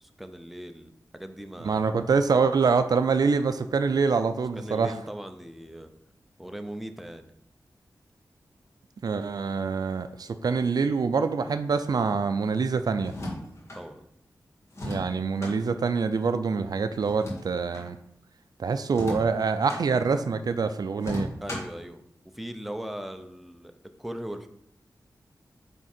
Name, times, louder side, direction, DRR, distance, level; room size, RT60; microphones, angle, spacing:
voice 1, 0.0-2.0 4.6-5.9 6.4-7.3 13.7-14.1 21.4-22.0 22.3-23.7 24.0-24.5, right 1 dB, ahead, 7 dB, 0.6 m, -39 dB
voice 2, 1.6-4.9 9.0-13.1 14.8-18.0 18.6-21.3, right 5 dB, 65° right, 10 dB, 0.4 m, -25 dB
sound 1, 13.0-13.8 14.7-15.6 17.0-17.9 18.9-19.8 21.0-21.8, left 1 dB, 40° left, 2.0 m, -36 dB
8.7 x 3.6 x 4.3 m, 0.75 s
wide cardioid pair, 110°, 7 cm